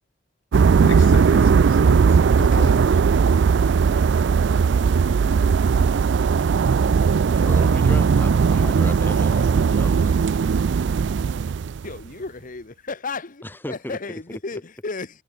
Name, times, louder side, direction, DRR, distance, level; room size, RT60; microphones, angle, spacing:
sound 1, 0.5-11.9, right 5 dB, 65° right, 0.4 m, -18 dB
voice 1, 0.8-3.0, left 4 dB, 85° left, 0.9 m, -34 dB
voice 2, 7.4-10.2 13.4-14.0 14.5-14.6, left 1 dB, 10° left, 1.7 m, -35 dB
voice 3, 11.8-15.2, left 3 dB, 45° left, 1.1 m, -33 dB
head